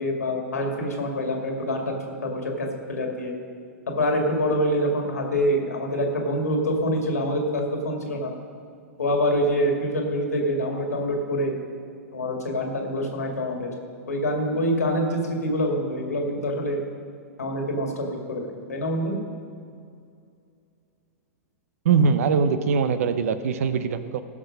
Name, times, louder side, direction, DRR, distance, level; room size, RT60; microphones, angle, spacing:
voice 1, 0.0-3.3 3.9-8.3 9.0-11.5 12.1-13.7 14.1-16.8 17.4-19.1, equal, 90° left, 1 dB, 2.1 m, -25 dB
voice 2, 21.8-24.2, right 5 dB, 70° right, 11 dB, 0.8 m, -22 dB
16.0 x 6.2 x 5.2 m, 2.4 s
hypercardioid pair, 110°, 8 cm